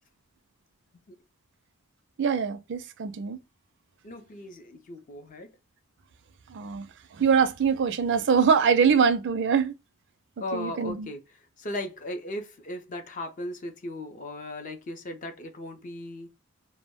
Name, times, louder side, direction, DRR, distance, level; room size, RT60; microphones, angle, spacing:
voice 1, 2.2-3.4 6.5-6.9 7.2-9.7 10.5-11.1, right 6 dB, 55° right, 0.4 m, -23 dB
voice 2, 4.0-5.5 10.4-11.2 11.6-16.3, left 1 dB, 40° left, 0.5 m, -37 dB
2.2 x 2.0 x 3.5 m
head